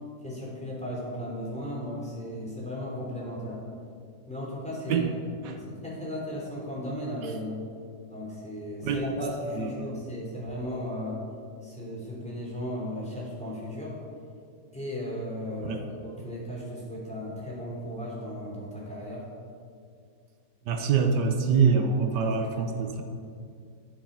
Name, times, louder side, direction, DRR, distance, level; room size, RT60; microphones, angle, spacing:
voice 1, 0.2-3.6 4.3-5.1 5.4-7.6 8.1-11.2 11.6-14.0 14.7-19.2 22.1-23.0, left 1 dB, 5° left, -6 dB, 3.2 m, -36 dB
voice 2, 8.8-9.2 9.5-10.0 15.6-15.8 20.7-23.0, right 5 dB, 80° right, 6 dB, 1.4 m, -25 dB
12.5 x 7.1 x 5.6 m, 2.3 s
omnidirectional pair, 1.8 m